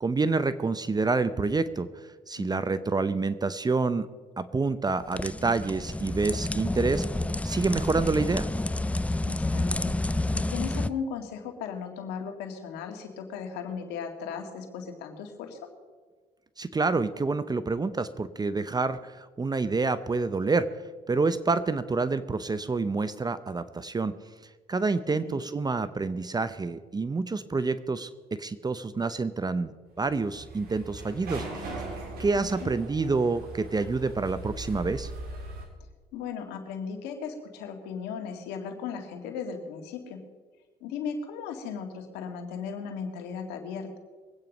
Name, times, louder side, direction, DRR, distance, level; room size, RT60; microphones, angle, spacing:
voice 1, 0.0-4.1 4.4-7.1 7.4-8.5 16.6-20.7 21.1-24.2 24.7-31.7 32.2-35.1, right 3 dB, 25° right, 14 dB, 0.7 m, -28 dB
voice 2, 2.4-2.8 9.3-9.9 10.3-15.7 25.1-25.4 32.3-32.7 36.1-40.2 40.8-44.0, left 6 dB, 90° left, 4 dB, 2.1 m, -37 dB
sound 1, 5.0-10.9, left 2 dB, 10° left, 0.5 m, -29 dB
sound 2, 30.0-35.7, right 2 dB, 70° right, 4.0 m, -39 dB
22.0 x 9.0 x 5.2 m, 1.4 s
supercardioid pair, 75°, 17 cm